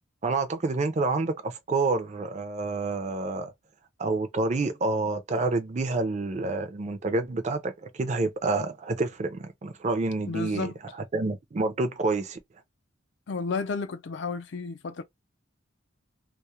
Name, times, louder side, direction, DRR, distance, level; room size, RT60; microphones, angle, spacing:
voice 1, 0.2-3.5 4.0-10.7 11.1-12.4, right 3 dB, 35° right, 0.4 m, -28 dB
voice 2, 10.3-10.8 13.3-15.0, left 4 dB, 60° left, 0.4 m, -32 dB
2.2 x 2.0 x 2.8 m
head